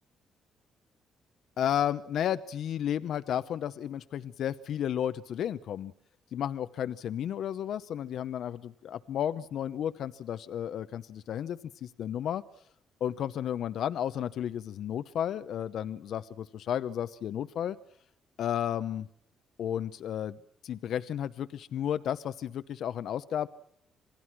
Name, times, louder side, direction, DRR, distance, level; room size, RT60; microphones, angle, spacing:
voice 1, 1.6-5.9 6.3-12.4 13.0-17.8 18.4-19.1 19.6-20.4 20.6-23.5, left 10 dB, 70° left, 13 dB, 0.8 m, -33 dB
27.5 x 19.5 x 6.1 m, 0.71 s
cardioid pair, 90°, 0 cm